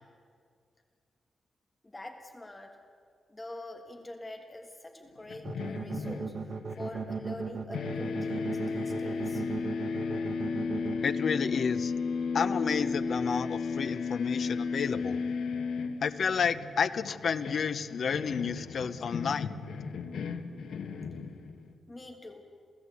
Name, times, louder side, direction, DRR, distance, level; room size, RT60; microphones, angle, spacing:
voice 1, 1.8-2.8 3.3-9.4 21.9-22.4, left 1 dB, 15° left, 4 dB, 1.5 m, -45 dB
sound 1, 5.3-7.5 7.7-21.7, left 4 dB, 80° left, 1.2 m, -34 dB
sound 2, 5.4-10.9, right 5 dB, 45° right, 1.2 m, -36 dB
voice 2, 11.0-11.9 12.3-15.2 16.0-19.5, left 6 dB, 50° left, 13 dB, 0.7 m, -31 dB
27.5 x 16.5 x 8.3 m, 2.2 s
wide cardioid pair, 175°, 0 cm